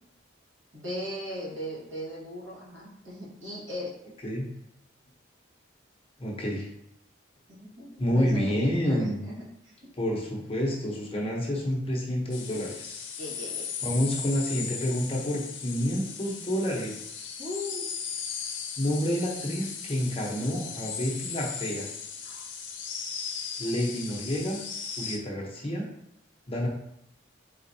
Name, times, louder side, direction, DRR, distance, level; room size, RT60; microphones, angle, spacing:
voice 1, 0.7-3.9 7.5-9.7 13.2-13.7 17.4-17.9 22.2-22.4, left 1 dB, 75° right, -5 dB, 1.6 m, -38 dB
voice 2, 6.2-6.7 8.0-9.2 10.0-13.2 13.8-17.1 18.8-21.9 23.6-24.6 25.0-25.9 26.5-26.7, equal, 30° left, -1 dB, 0.8 m, -29 dB
sound 1, 12.3-25.2, left 6 dB, 75° left, 0.6 m, -37 dB
4.3 x 3.8 x 2.7 m, 0.76 s
head